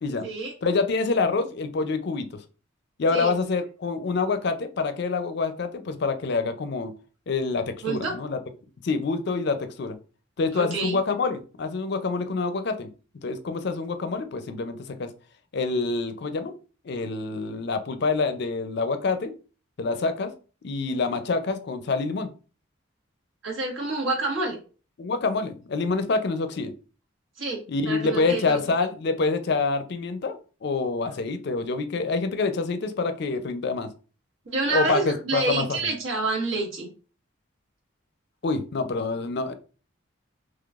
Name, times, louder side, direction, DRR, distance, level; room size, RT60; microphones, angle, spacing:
voice 1, 0.6-2.4 3.0-6.9 7.3-8.4 8.8-10.0 10.4-12.9 13.2-15.1 15.5-16.6 16.8-19.3 19.8-20.3 20.6-22.3 25.0-26.7 27.7-33.9 34.7-35.8 38.4-39.5, left 4 dB, 55° left, 9 dB, 0.4 m, -26 dB
voice 2, 7.8-8.1 10.5-11.0 23.4-24.6 27.4-28.6 34.5-36.9, right 3 dB, 75° right, 0 dB, 1.4 m, -28 dB
3.8 x 3.1 x 2.3 m, 0.36 s
head